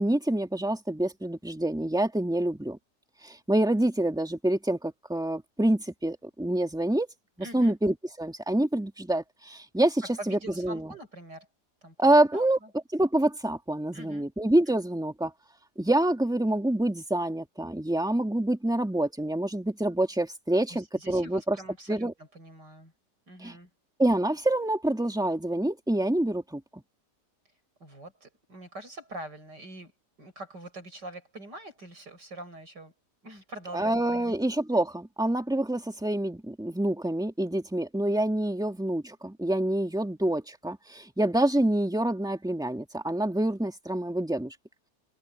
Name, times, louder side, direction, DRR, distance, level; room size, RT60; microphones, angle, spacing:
voice 1, 0.0-2.8 3.2-7.1 7.5-10.9 12.0-12.6 12.9-15.3 15.8-21.6 21.9-22.1 23.4-23.6 24.0-26.8 33.7-44.5, right 1 dB, ahead, 2.1 m, -26 dB
voice 2, 7.4-7.8 10.0-11.5 11.8-12.0 12.3-12.7 13.9-14.3 14.7-14.9 20.7-22.9 23.3-23.7 27.8-29.9 30.2-32.9 33.2-34.4, right 1 dB, 70° right, 8.7 m, -44 dB
omnidirectional pair, 1.9 m